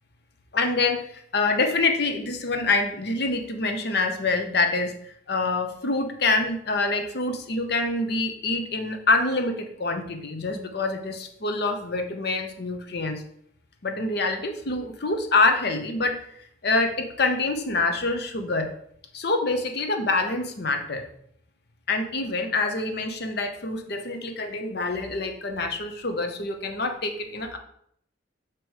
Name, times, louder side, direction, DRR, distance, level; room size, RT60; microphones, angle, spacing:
voice 1, 0.5-13.2 13.8-16.2 16.6-18.7 19.1-21.0 21.9-27.6, left 3 dB, 55° left, 5 dB, 0.8 m, -26 dB
7.9 x 3.0 x 4.7 m, 0.69 s
head